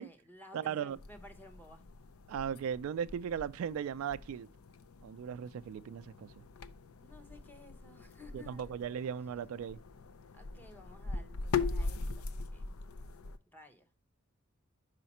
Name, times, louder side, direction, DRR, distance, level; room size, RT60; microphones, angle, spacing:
voice 1, 0.0-1.8 7.0-8.7 10.3-12.2 12.5-12.7 13.5-13.9, left 1 dB, 10° left, 0.8 m, -55 dB
voice 2, 0.5-1.0 2.3-4.5 5.0-6.4 8.3-9.8, right 8 dB, 70° right, 0.3 m, -37 dB
sound 1, 0.9-13.4, left 4 dB, 90° left, 0.5 m, -41 dB
5.7 x 5.0 x 4.1 m
head